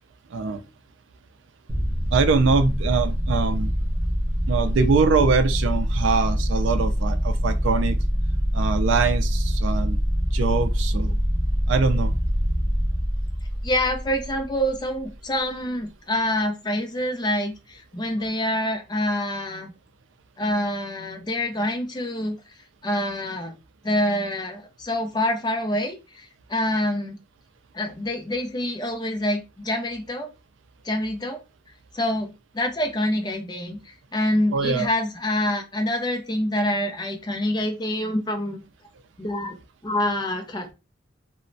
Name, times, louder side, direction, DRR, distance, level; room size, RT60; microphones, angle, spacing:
sound 1, 1.7-15.0, equal, 20° right, 0.6 m, -24 dB
voice 1, 2.1-3.7 4.5-8.0 8.5-10.0 10.3-11.2 11.7-12.2 34.5-34.9, right 4 dB, 70° right, 0.3 m, -23 dB
voice 2, 13.6-19.7 20.4-22.4 22.8-23.5 23.8-27.2 27.7-30.3 30.8-31.4 31.9-38.6 39.2-39.6 39.8-40.7, left 1 dB, 20° left, 0.4 m, -26 dB
3.0 x 2.1 x 2.5 m
head